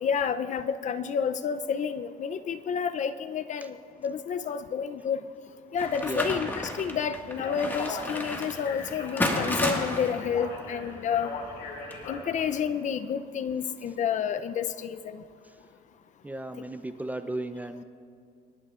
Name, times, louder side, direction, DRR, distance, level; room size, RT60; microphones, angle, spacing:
voice 1, 0.0-3.8 4.0-5.2 5.7-11.3 12.1-15.2, left 7 dB, 45° left, 11 dB, 0.5 m, -30 dB
sound 1, 5.8-12.5, left 1 dB, 10° left, 1.7 m, -33 dB
voice 2, 6.0-6.5 16.2-17.8, right 1 dB, 10° right, 8 dB, 0.5 m, -35 dB
Speech, 7.3-12.6, left 4 dB, 80° left, 2.6 m, -39 dB
25.0 x 12.0 x 2.4 m, 2.3 s
cardioid pair, 110°, 17 cm